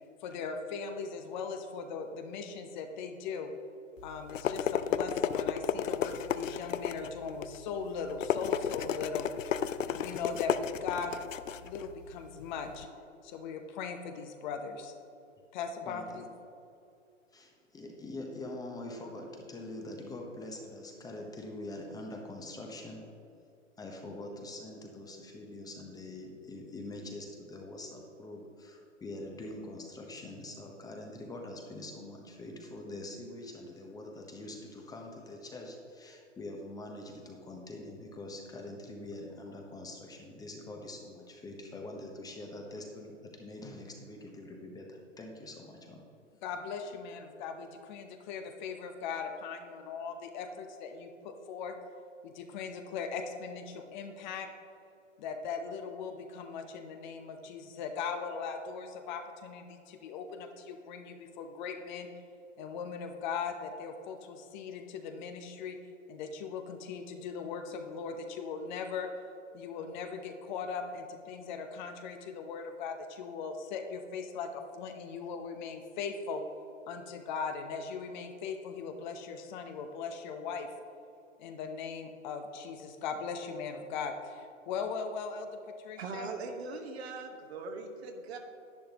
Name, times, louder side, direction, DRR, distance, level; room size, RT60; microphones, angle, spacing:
voice 1, 0.2-3.5 4.0-9.3 9.9-11.3 11.6-12.9 13.2-14.9 15.5-16.2 46.4-51.7 52.2-54.5 55.2-62.1 62.6-65.8 66.1-69.1 69.5-76.4 76.9-80.7 81.4-86.3, left 5 dB, 35° left, 6 dB, 0.8 m, -39 dB
sound 1, 4.0-12.8, left 8 dB, 80° left, 0.5 m, -33 dB
voice 2, 15.8-16.3 17.3-23.1 23.8-46.0, left 2 dB, 10° left, 1 dB, 0.9 m, -44 dB
voice 3, 86.0-88.4, right 4 dB, 55° right, 4 dB, 1.3 m, -40 dB
10.5 x 10.0 x 3.0 m, 2.6 s
hypercardioid pair, 120°, 38 cm